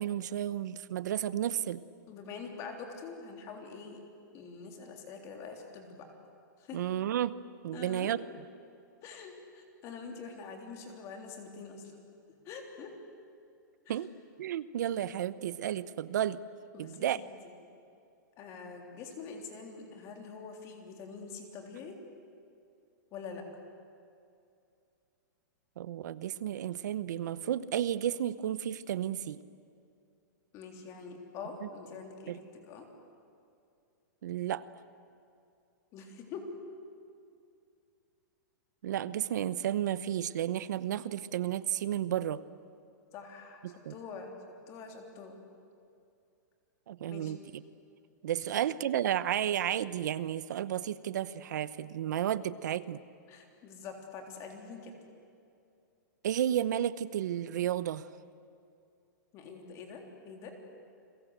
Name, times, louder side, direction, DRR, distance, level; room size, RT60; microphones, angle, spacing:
voice 1, 0.0-1.8 6.7-7.4 7.6-8.2 13.9-14.1 14.4-16.4 16.8-17.2 25.8-29.4 32.3-32.4 34.2-34.6 38.8-42.4 43.6-43.9 46.9-47.6 48.2-53.0 56.2-58.1, right 11 dB, 65° right, 16 dB, 0.9 m, -32 dB
voice 2, 2.1-4.0 4.3-6.1 6.6-6.8 7.7-8.2 9.0-11.9 12.5-12.9 13.9-14.0 16.7-17.1 18.4-22.0 23.1-23.4 30.5-32.9 35.9-36.5 43.1-43.6 43.9-44.3 44.7-45.4 47.1-47.3 53.3-54.9 59.3-60.5, left 5 dB, 30° left, 3 dB, 3.5 m, -45 dB
30.0 x 22.5 x 8.1 m, 2.5 s
hypercardioid pair, 155°, 10 cm